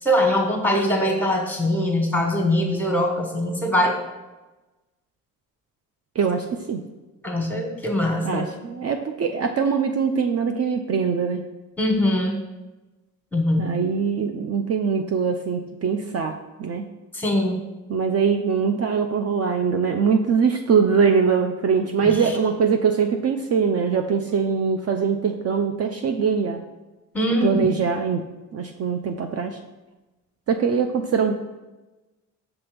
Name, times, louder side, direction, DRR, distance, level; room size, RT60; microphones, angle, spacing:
voice 1, 0.0-4.0 7.2-8.4 11.8-12.4 13.3-13.7 17.1-17.6 22.0-22.4 27.1-27.6, left 1 dB, 5° left, 2 dB, 1.4 m, -22 dB
voice 2, 6.2-6.8 8.2-11.4 13.6-16.9 17.9-26.6 27.4-28.2 28.5-29.6 30.5-31.3, right 6 dB, 45° right, 5 dB, 0.5 m, -22 dB
5.6 x 3.5 x 5.1 m, 1.1 s
supercardioid pair, 65°, 35 cm